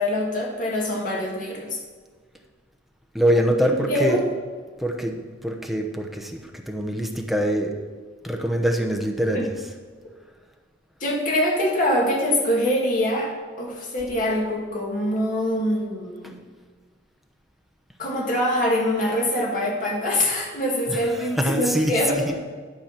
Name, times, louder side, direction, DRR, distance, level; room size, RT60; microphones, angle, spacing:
voice 1, 0.0-1.8 3.9-4.2 9.3-9.5 11.0-16.4 18.0-22.4, left 1 dB, 50° left, -2 dB, 2.3 m, -24 dB
voice 2, 3.1-4.2 4.8-7.7 8.2-9.7 20.9-22.4, equal, ahead, 2 dB, 0.9 m, -24 dB
11.5 x 5.1 x 5.9 m, 1.5 s
head